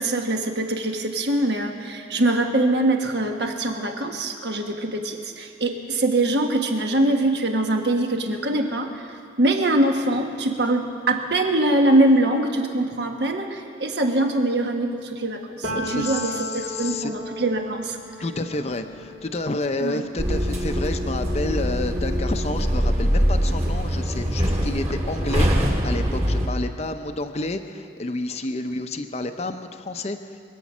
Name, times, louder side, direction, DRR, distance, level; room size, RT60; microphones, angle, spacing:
voice 1, 0.0-18.0 19.8-20.0, right 1 dB, 65° right, 3 dB, 1.4 m, -23 dB
Piano, 15.6-23.2 23.6-25.1, right 1 dB, 85° right, 4.1 m, -37 dB
voice 2, 15.8-17.1 18.2-30.4, left 2 dB, 35° left, 6 dB, 0.6 m, -30 dB
sound 1, 20.2-26.5, equal, 35° right, 2.0 m, -23 dB
24.5 x 8.3 x 6.1 m, 2.5 s
head